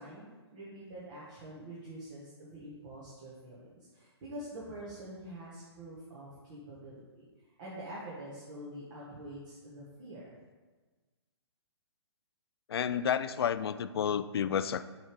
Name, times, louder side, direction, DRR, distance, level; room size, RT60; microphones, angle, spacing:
voice 1, 0.0-7.3 7.6-10.3, right 1 dB, 40° right, -7 dB, 1.7 m, -46 dB
voice 2, 12.7-14.8, left 8 dB, 60° left, 12 dB, 0.4 m, -30 dB
7.3 x 3.6 x 4.9 m, 1.3 s
hypercardioid pair, 135°, 15 cm